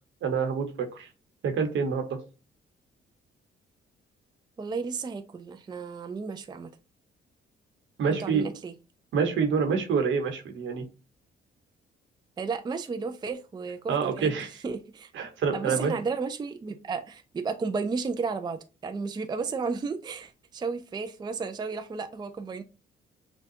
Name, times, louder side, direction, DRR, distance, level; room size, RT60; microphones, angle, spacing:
voice 1, 0.2-1.1 1.4-2.2 8.0-8.5 9.1-10.8 13.9-14.5 15.1-15.9, right 5 dB, 75° right, 5 dB, 1.1 m, -27 dB
voice 2, 4.6-6.7 8.1-8.7 12.4-14.4 14.6-15.1 15.5-22.6, right 4 dB, 20° right, 8 dB, 0.4 m, -33 dB
6.5 x 2.3 x 2.8 m, 0.32 s
cardioid pair, 90°, 20 cm